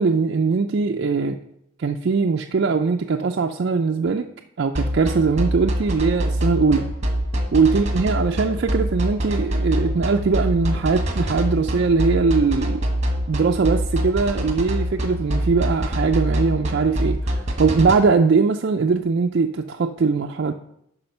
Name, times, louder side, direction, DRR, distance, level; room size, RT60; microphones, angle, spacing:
voice 1, 0.0-1.4 1.8-4.3 4.6-6.9 7.5-12.8 13.3-17.3 17.6-20.5, right 4 dB, 55° right, 0.4 m, -21 dB
sound 1, 4.8-18.0, equal, 35° right, 1.3 m, -24 dB
8.8 x 5.7 x 5.3 m
head